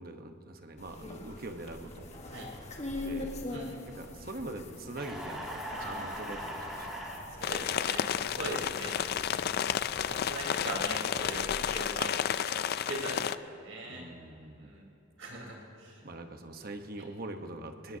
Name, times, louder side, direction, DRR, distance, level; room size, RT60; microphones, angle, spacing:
voice 1, 0.0-2.1 3.0-3.3 3.9-6.9 13.8-14.7 16.0-18.0, right 2 dB, 50° right, 6 dB, 1.1 m, -43 dB
sound 1, 0.8-11.7, left 2 dB, 35° left, 1.4 m, -44 dB
sound 2, 5.0-7.2, equal, 5° right, 2.4 m, -39 dB
voice 2, 5.7-6.7 7.3-9.0 10.0-14.1 14.6-14.9 15.2-16.0, right 1 dB, 80° right, -3 dB, 4.0 m, -41 dB
sound 3, 7.4-13.4, left 9 dB, 50° left, 0.3 m, -31 dB
20.5 x 19.0 x 2.8 m, 2.9 s
head